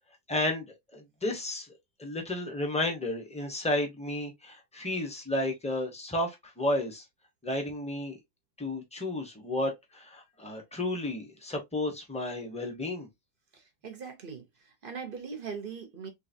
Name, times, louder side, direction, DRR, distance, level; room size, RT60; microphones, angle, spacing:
voice 1, 0.3-0.7 0.9-1.7 2.0-7.0 7.4-8.2 8.6-13.1, left 1 dB, 5° left, 0.5 m, -32 dB
voice 2, 13.5-14.4 14.8-16.1, right 6 dB, 55° right, 0.6 m, -40 dB
3.8 x 3.3 x 2.6 m
omnidirectional pair, 2.0 m